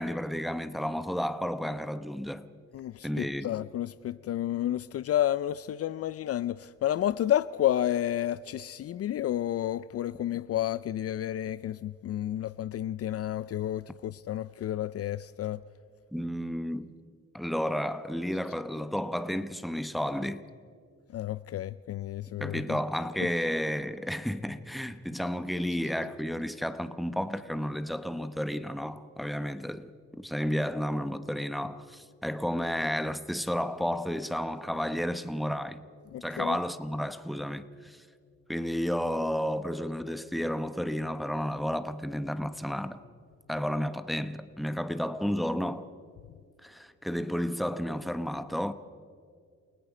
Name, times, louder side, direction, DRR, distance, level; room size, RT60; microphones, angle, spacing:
voice 1, 0.0-2.5 3.0-3.5 16.1-16.9 17.3-20.4 22.4-35.8 36.2-38.0 38.5-43.0 43.5-45.9 46.6-48.7, equal, ahead, 0.9 m, -32 dB
voice 2, 2.7-15.6 21.1-22.6 36.1-36.6, left 12 dB, 50° left, 0.4 m, -31 dB
29.5 x 18.0 x 5.0 m
cardioid pair, 90°, 30 cm